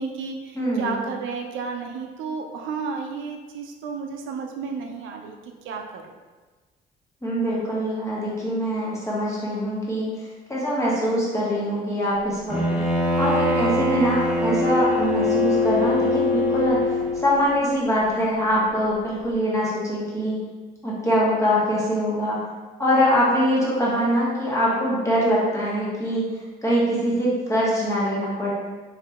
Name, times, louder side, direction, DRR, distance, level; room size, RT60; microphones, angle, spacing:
voice 1, 0.0-6.1, right 5 dB, 85° right, 3 dB, 0.5 m, -32 dB
voice 2, 0.5-1.0 7.2-10.1 10.5-12.6 13.2-16.8 17.2-20.4 20.8-22.4 22.8-26.3 26.6-28.5, equal, 15° left, -6 dB, 1.3 m, -23 dB
Bowed string instrument, 12.5-17.4, left 2 dB, 5° right, 1.0 m, -23 dB
3.1 x 2.9 x 3.4 m, 1.3 s
cardioid pair, 90°, 20 cm